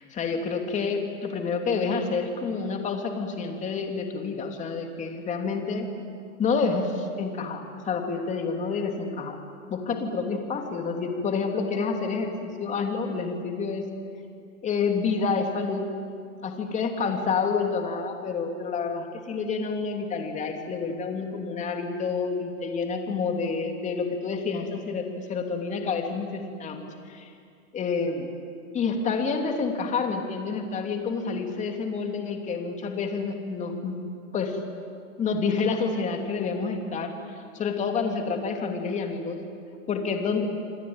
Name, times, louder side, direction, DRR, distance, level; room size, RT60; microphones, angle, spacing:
voice 1, 0.0-5.9 6.4-9.4 9.7-13.9 14.6-15.9 16.4-27.3 27.7-28.3 28.7-34.0 34.3-34.6 35.2-37.2 37.5-39.4 39.9-40.5, left 5 dB, 15° left, 4 dB, 2.9 m, -28 dB
27.5 x 24.5 x 8.9 m, 2.3 s
hypercardioid pair, 145°, 43 cm